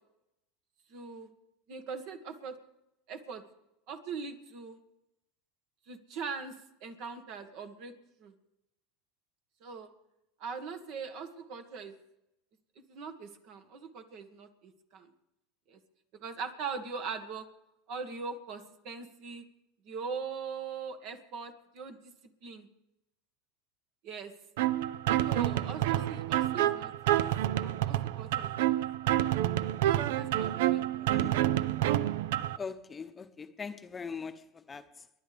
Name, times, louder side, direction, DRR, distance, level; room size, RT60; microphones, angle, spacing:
voice 1, 0.9-1.3 1.7-2.6 3.1-3.4 3.9-4.8 5.9-6.6 6.8-7.9 8.2-8.3 9.6-9.9 10.4-11.9 12.9-15.1 15.7-15.8 16.1-17.5 17.9-19.4 19.8-22.1 22.4-22.7 24.0-24.3 25.2-27.3 27.6-28.7 29.0-29.2 30.1-31.3, right 5 dB, 60° right, 1.7 m, -41 dB
sound 1, 24.6-32.6, right 13 dB, 75° right, 0.5 m, -28 dB
voice 2, 32.6-34.9, left 5 dB, 20° left, 0.8 m, -41 dB
30.0 x 11.0 x 3.4 m
supercardioid pair, 105°, 0 cm